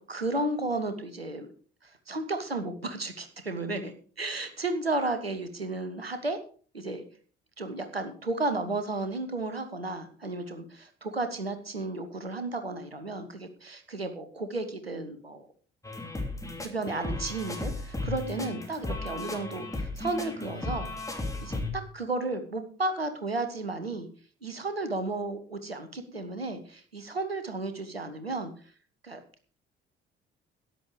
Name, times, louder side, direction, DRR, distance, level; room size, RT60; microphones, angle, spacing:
voice 1, 0.1-1.5 1.8-6.4 6.7-7.0 7.6-15.5 16.6-20.9 21.4-24.1 24.4-28.5 29.0-29.2, right 2 dB, 90° right, 9 dB, 1.1 m, -33 dB
sound 1, 15.8-21.7, left 2 dB, 10° left, 3.1 m, -35 dB
13.0 x 10.0 x 4.9 m, 0.42 s
figure-of-eight pair, 45°, 29 cm